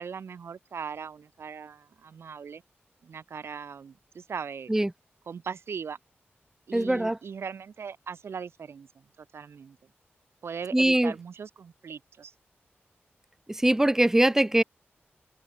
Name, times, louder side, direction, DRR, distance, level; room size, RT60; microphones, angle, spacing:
voice 1, 0.0-2.6 3.0-4.7 5.3-6.0 6.7-9.8 10.4-12.3, right 6 dB, 85° right, 5.9 m, -39 dB
voice 2, 6.7-7.2 10.7-11.1 13.5-14.6, right 1 dB, 10° right, 1.7 m, -22 dB
wide cardioid pair, 140°, 4 cm